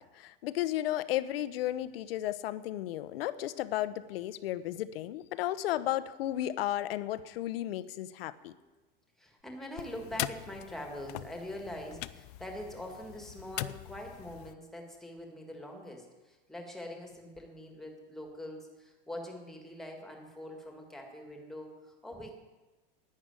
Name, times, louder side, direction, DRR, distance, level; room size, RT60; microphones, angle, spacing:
voice 1, 0.0-8.5, left 13 dB, 80° left, 15 dB, 0.8 m, -34 dB
voice 2, 9.2-22.3, left 1 dB, ahead, 2 dB, 1.7 m, -43 dB
sound 1, 9.8-14.5, left 17 dB, 45° left, 0.4 m, -41 dB
11.5 x 9.7 x 9.0 m, 1.2 s
supercardioid pair, 170°, 29 cm